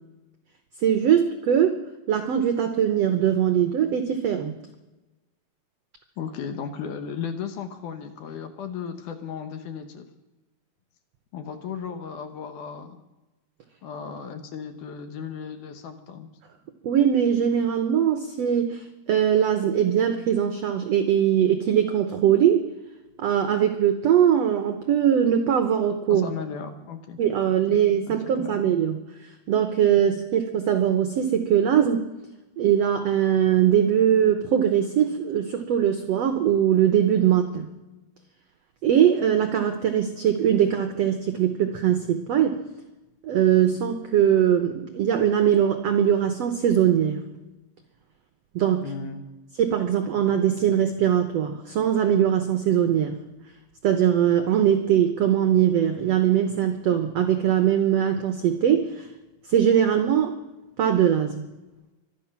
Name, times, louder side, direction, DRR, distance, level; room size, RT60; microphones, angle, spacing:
voice 1, 0.8-1.8 2.1-4.6 16.8-22.7 23.2-26.3 27.2-29.0 29.5-32.0 32.6-37.7 38.8-42.6 43.2-47.2 48.5-48.9 49.6-53.1 53.8-59.1 59.5-60.3 60.8-61.4, right 9 dB, 80° right, 7 dB, 1.4 m, -21 dB
voice 2, 6.2-10.1 11.3-13.0 13.8-16.3 26.1-27.2 27.5-27.6 28.1-28.6 48.8-49.2, left 6 dB, 70° left, 7 dB, 2.3 m, -35 dB
24.5 x 9.5 x 5.9 m, 1.0 s
omnidirectional pair, 4.3 m